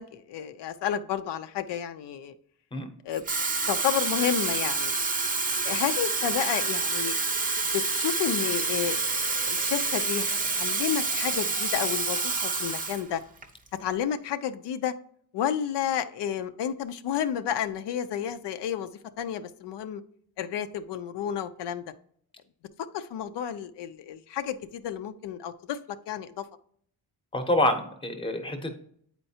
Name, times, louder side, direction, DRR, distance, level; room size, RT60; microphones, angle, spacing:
voice 1, 0.0-2.3 3.1-3.2 3.7-4.9 5.6-7.2 7.7-13.2 13.8-14.9 15.3-18.9 19.2-20.0 20.4-21.8 22.9-25.8 26.1-26.4, left 9 dB, 90° left, 10 dB, 0.6 m, -31 dB
Water tap faucet / Fill (with liquid), 3.1-13.0 13.4-13.7, right 3 dB, 20° right, 0.6 m, -28 dB
voice 2, 27.3-28.7, left 1 dB, 15° left, 7 dB, 0.7 m, -26 dB
8.8 x 4.4 x 2.7 m, 0.64 s
wide cardioid pair, 150°, 40 cm